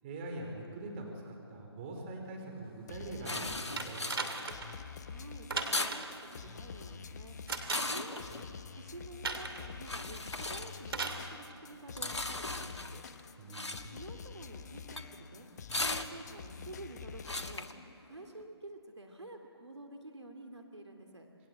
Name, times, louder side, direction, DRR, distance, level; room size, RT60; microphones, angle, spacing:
voice 1, 0.0-4.2 13.4-13.9, right 2 dB, 25° right, 1 dB, 4.9 m, -43 dB
sound 1, 2.9-17.7, left 6 dB, 40° left, 1.0 m, -47 dB
sound 2, 3.3-18.4, left 2 dB, 90° left, 1.5 m, -40 dB
sound 3, 3.8-4.7 5.5-6.2 7.5-8.1 9.2-9.7 10.9-11.3 12.3-12.4, right 4 dB, 60° right, 2.9 m, -37 dB
voice 2, 5.0-7.4 7.8-8.5 8.8-13.0 13.9-15.5 15.8-17.8 18.1-21.3, right 2 dB, 85° right, 4 dB, 2.7 m, -49 dB
27.5 x 20.5 x 8.1 m, 2.7 s
figure-of-eight pair, 150°, 14 cm